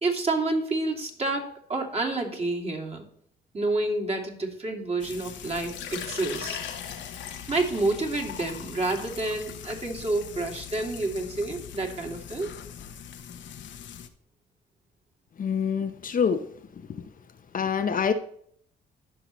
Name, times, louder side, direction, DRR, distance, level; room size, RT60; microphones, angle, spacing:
voice 1, 0.0-3.0 3.5-6.6 7.5-12.5, right 2 dB, 30° right, 2 dB, 2.5 m, -29 dB
Frying (food), 5.0-14.1, left 9 dB, 70° left, 1.0 m, -42 dB
Water / Liquid, 5.6-11.2, left 8 dB, 85° left, 1.8 m, -40 dB
voice 2, 15.4-16.5 16.9-17.0 17.5-18.1, left 6 dB, 45° left, 8 dB, 0.8 m, -26 dB
14.5 x 5.8 x 3.1 m, 0.64 s
cardioid pair, 90°, 20 cm